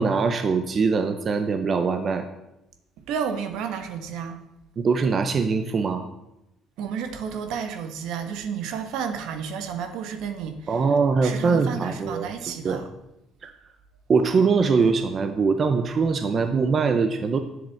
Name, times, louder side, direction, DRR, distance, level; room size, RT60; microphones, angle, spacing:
voice 1, 0.0-2.3 4.8-6.1 10.7-12.8 13.4-13.5 14.1-17.4, right 5 dB, 25° right, 0.7 m, -22 dB
voice 2, 3.1-4.4 6.8-10.9 11.2-12.9, right 7 dB, 65° right, 1.5 m, -31 dB
10.5 x 7.8 x 7.8 m
cardioid pair, 175°, 0 cm